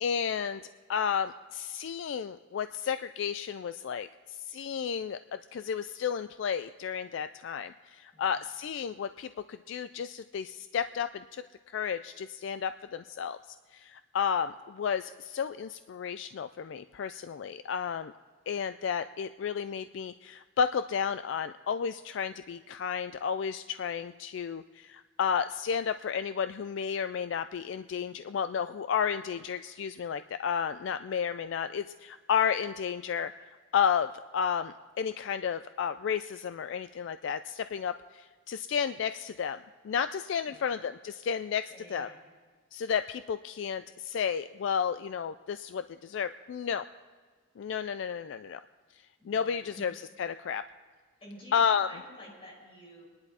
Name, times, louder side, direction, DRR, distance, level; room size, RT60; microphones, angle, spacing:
voice 1, 0.0-0.6 0.9-13.4 13.7-18.1 18.5-42.1 42.7-46.8 47.6-48.6 49.3-49.9 50.2-50.6 51.5-51.9, left 7 dB, 65° left, 11 dB, 0.3 m, -32 dB
voice 2, 8.1-8.5 40.5-40.8 41.7-42.2 49.2-49.8 51.2-53.0, equal, 30° left, -5 dB, 6.0 m, -51 dB
25.5 x 10.5 x 4.2 m, 1.5 s
head